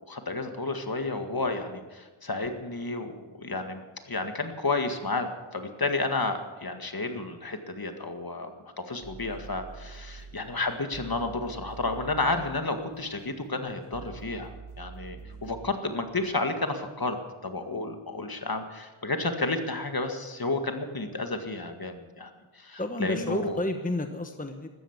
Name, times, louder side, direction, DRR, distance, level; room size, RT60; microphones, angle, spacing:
voice 1, 0.1-8.5 8.8-17.2 17.4-23.6, left 3 dB, 45° left, 6 dB, 2.0 m, -31 dB
sound 1, 9.0-15.7, right 5 dB, 75° right, 2.9 m, -46 dB
voice 2, 22.8-24.7, left 1 dB, 15° left, 7 dB, 1.2 m, -31 dB
15.0 x 13.0 x 7.3 m, 1.3 s
cardioid pair, 45°, 50 cm